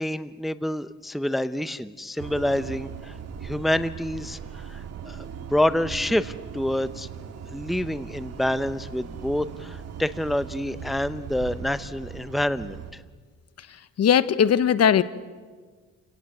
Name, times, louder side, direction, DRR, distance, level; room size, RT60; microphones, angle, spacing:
voice 1, 0.0-3.1 3.4-5.2 5.5-7.1 7.5-13.0, left 1 dB, ahead, 14 dB, 0.7 m, -27 dB
sound 1, 2.2-12.9, right 7 dB, 55° right, 2.1 m, -39 dB
voice 2, 14.0-15.0, left 8 dB, 55° left, 15 dB, 1.1 m, -19 dB
29.5 x 17.0 x 7.9 m, 1.5 s
cardioid pair, 90°, 30 cm